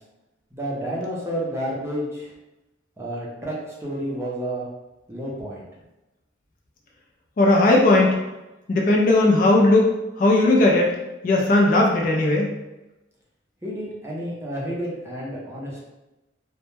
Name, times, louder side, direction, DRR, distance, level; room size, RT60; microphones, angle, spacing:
voice 1, 0.5-2.3 3.0-3.5 3.8-4.6 5.1-5.6 13.6-15.8, equal, 15° right, -5 dB, 0.5 m, -30 dB
voice 2, 7.4-8.1 8.7-9.9 10.2-10.9 11.2-12.5, left 2 dB, 45° left, -1 dB, 0.3 m, -17 dB
2.1 x 2.1 x 3.0 m, 1.0 s
head